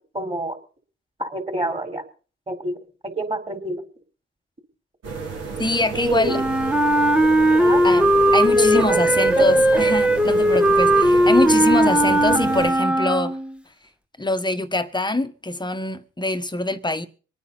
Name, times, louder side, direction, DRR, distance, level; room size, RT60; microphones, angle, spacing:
voice 1, 0.1-0.6 1.2-2.0 2.5-2.7 3.0-3.8 5.9-6.4 7.6-7.8 8.6-9.9, right 2 dB, 20° right, 4.1 m, -27 dB
sound 1, 5.0-12.7, right 5 dB, 55° right, 3.6 m, -32 dB
voice 2, 5.6-6.4 7.8-13.4 14.2-17.1, left 2 dB, 15° left, 1.5 m, -24 dB
Wind instrument woodwind instrument, 6.3-13.6, right 1 dB, 5° right, 1.2 m, -18 dB
25.0 x 9.4 x 4.2 m
supercardioid pair, 60°, 29 cm